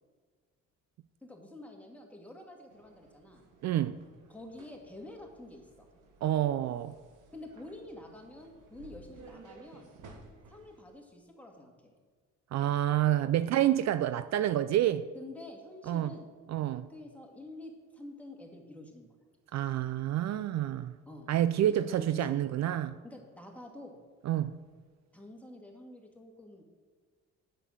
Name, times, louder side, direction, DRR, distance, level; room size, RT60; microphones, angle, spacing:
voice 1, 1.2-3.4 4.3-5.9 7.3-9.9 10.5-11.9 15.1-16.3 16.9-19.1 21.1-21.3 21.7-22.4 23.0-24.0 25.1-26.6, left 1 dB, 5° left, 1 dB, 2.1 m, -48 dB
sound 1, 2.7-10.8, right 3 dB, 85° right, 1.8 m, -56 dB
voice 2, 3.6-4.0 6.2-6.9 12.5-15.1 15.9-16.1 16.5-16.8 19.5-20.9 21.3-23.0 24.2-24.6, right 12 dB, 60° right, 13 dB, 0.5 m, -28 dB
8.8 x 6.7 x 7.2 m, 1.5 s
cardioid pair, 90°, 30 cm